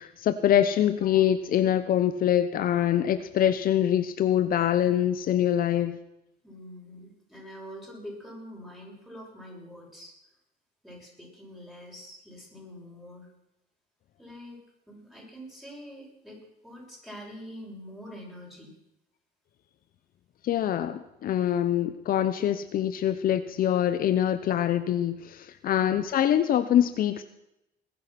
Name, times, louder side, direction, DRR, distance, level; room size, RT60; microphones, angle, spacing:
voice 1, 0.0-6.0 20.4-27.2, left 10 dB, 60° left, 11 dB, 0.9 m, -24 dB
voice 2, 6.4-10.1 10.8-13.3 14.2-18.7 25.7-26.0, equal, ahead, -2 dB, 7.0 m, -45 dB
21.0 x 9.7 x 6.0 m, 0.86 s
cardioid pair, 110°, 17 cm